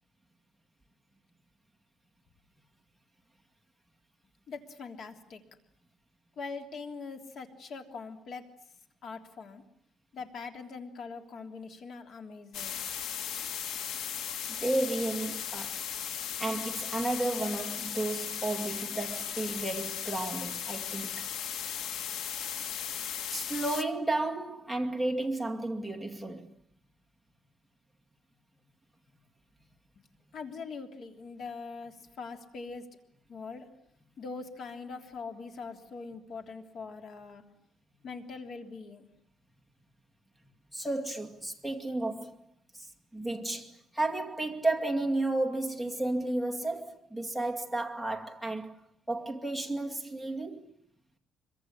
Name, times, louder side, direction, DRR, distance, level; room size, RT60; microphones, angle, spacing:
voice 1, 4.5-5.4 6.4-8.5 9.0-9.6 10.1-12.8 30.3-32.8 33.3-33.7 34.2-37.4 38.0-39.1, left 4 dB, 45° left, 3.2 m, -42 dB
sound 1, 12.5-23.8, left 9 dB, 80° left, 1.8 m, -37 dB
voice 2, 14.5-15.8 16.4-21.3 23.3-26.5 40.7-42.4 42.7-42.9 43.1-48.8 49.1-50.7, right 2 dB, ahead, 2.3 m, -32 dB
25.0 x 23.5 x 9.9 m
cardioid pair, 165°, 0 cm